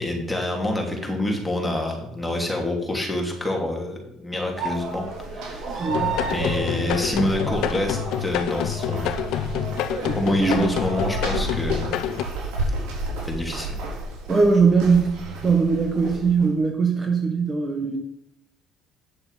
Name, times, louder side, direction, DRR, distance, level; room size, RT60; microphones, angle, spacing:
voice 1, 0.0-5.8 6.3-9.3 10.1-12.0 13.2-13.7, left 1 dB, 5° left, 0 dB, 2.9 m, -27 dB
sound 1, 4.5-11.5, right 4 dB, 50° right, 3.3 m, -33 dB
sound 2, 4.5-16.5, right 1 dB, 80° right, 4.2 m, -33 dB
voice 2, 5.8-6.1 10.0-10.8 14.3-15.1 15.4-18.0, right 4 dB, 25° right, 3 dB, 1.5 m, -21 dB
sound 3, 5.9-12.3, left 11 dB, 75° left, 0.7 m, -28 dB
9.6 x 6.8 x 5.7 m, 0.82 s
cardioid pair, 115°, 0 cm